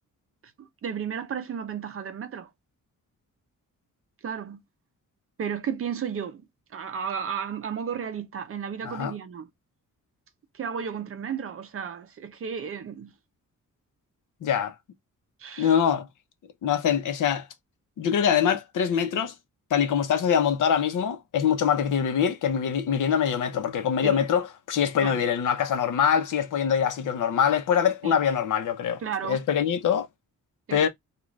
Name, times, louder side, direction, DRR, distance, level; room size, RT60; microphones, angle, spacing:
voice 1, 0.6-2.5 4.2-4.6 5.4-6.4 6.7-9.5 10.5-13.1 15.4-15.8 24.0-24.2 25.0-25.2 28.0-28.2 29.0-29.4 30.7-30.9, right 7 dB, 45° right, 0.5 m, -33 dB
voice 2, 14.4-14.7 15.6-16.1 16.6-17.5 18.0-19.3 19.7-30.1 30.7-30.9, left 8 dB, 70° left, 0.7 m, -24 dB
2.5 x 2.4 x 3.1 m
wide cardioid pair, 160°, 32 cm